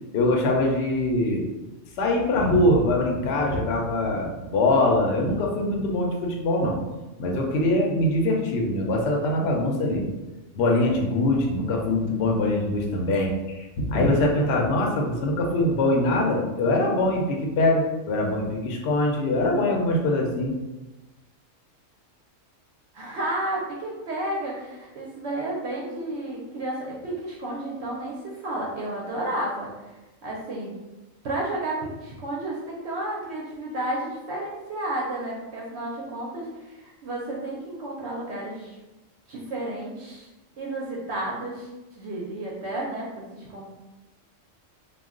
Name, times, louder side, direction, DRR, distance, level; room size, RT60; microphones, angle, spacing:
voice 1, 0.1-1.4 2.0-6.8 7.2-10.0 10.5-20.5, left 1 dB, 65° left, 0 dB, 0.7 m, -23 dB
voice 2, 22.9-29.7 30.2-30.7 31.2-38.8 39.3-40.3 40.6-41.7 41.9-43.6, right 1 dB, 65° right, -4 dB, 0.8 m, -32 dB
2.3 x 2.1 x 3.5 m, 1.1 s
omnidirectional pair, 1.3 m